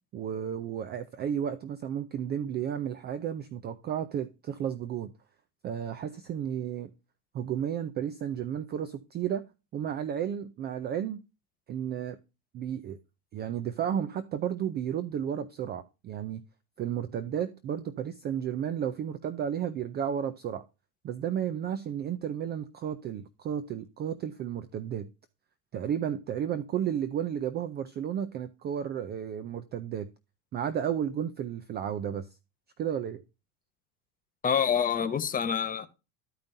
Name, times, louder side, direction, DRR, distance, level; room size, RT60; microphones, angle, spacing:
voice 1, 0.1-5.1 5.6-6.9 7.3-9.5 9.7-11.2 11.7-12.2 12.5-13.0 13.3-16.4 16.8-20.6 21.0-25.1 25.7-30.1 30.5-32.3 32.8-33.2, right 9 dB, 25° right, 0.4 m, -33 dB
voice 2, 34.4-35.9, left 7 dB, 20° left, 0.9 m, -27 dB
13.0 x 5.2 x 2.6 m
supercardioid pair, 130°, 47 cm